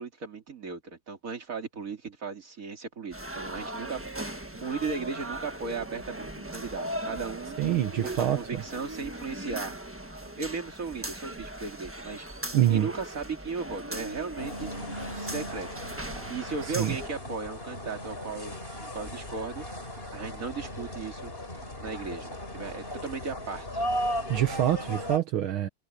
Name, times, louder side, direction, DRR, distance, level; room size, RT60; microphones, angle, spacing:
voice 1, 0.0-7.6 8.0-9.8 10.2-12.3 12.6-14.7 15.1-15.7 16.3-21.3 21.8-23.8, right 5 dB, 40° right, 3.0 m, -36 dB
sound 1, 3.1-17.1, right 1 dB, 10° right, 0.9 m, -39 dB
voice 2, 7.6-8.6 12.5-12.9 16.6-17.0 24.3-25.7, right 12 dB, 75° right, 1.9 m, -26 dB
sound 2, 14.4-25.2, equal, 25° left, 5.1 m, -36 dB
omnidirectional pair, 2.3 m